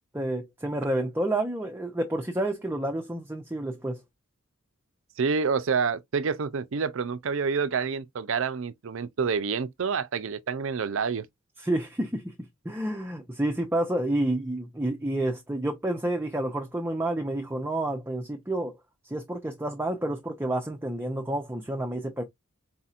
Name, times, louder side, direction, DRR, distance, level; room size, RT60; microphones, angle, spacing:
voice 1, 0.1-4.0 11.6-12.3 12.6-18.8 19.0-22.2, right 1 dB, 10° right, 0.6 m, -29 dB
voice 2, 5.2-11.3, right 5 dB, 65° right, 0.5 m, -28 dB
4.2 x 4.1 x 2.4 m
head